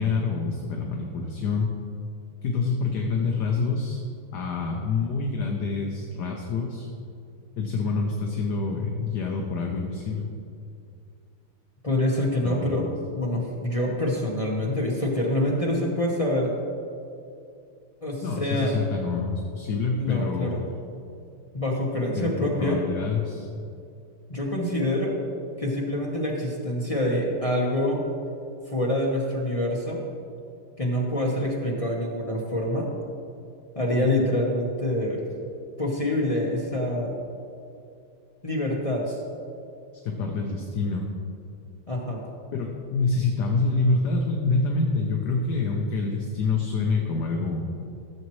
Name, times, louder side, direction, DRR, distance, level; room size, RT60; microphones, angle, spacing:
voice 1, 0.0-1.7 2.4-4.0 4.3-6.9 7.6-10.3 12.4-12.8 18.2-20.6 22.1-23.5 34.0-34.3 39.1-39.2 40.0-41.1 42.5-47.7, left 4 dB, 60° left, 1 dB, 1.2 m, -27 dB
voice 2, 11.8-12.9 13.1-16.5 18.0-18.7 19.9-20.6 21.5-22.8 24.3-25.2 25.6-28.0 28.7-30.0 30.8-32.9 33.7-35.3 35.8-37.2 38.4-39.0 41.9-42.2, left 1 dB, 30° left, -3 dB, 0.6 m, -26 dB
15.0 x 7.3 x 3.1 m, 2.5 s
omnidirectional pair, 2.4 m